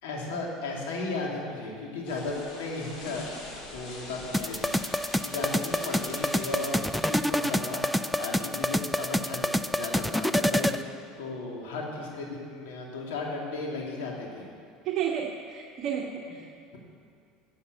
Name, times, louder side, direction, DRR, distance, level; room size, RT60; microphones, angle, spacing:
voice 1, 0.0-3.3 3.7-14.5, left 3 dB, 85° left, -1 dB, 2.8 m, -35 dB
sound 1, 2.0-7.2, left 2 dB, 60° left, 3.7 m, -44 dB
sound 2, 4.3-10.8, left 1 dB, 5° left, 0.4 m, -27 dB
voice 2, 14.8-16.5, right 8 dB, 50° right, -1 dB, 1.2 m, -32 dB
13.0 x 7.9 x 8.2 m, 2.2 s
supercardioid pair, 110°, 0 cm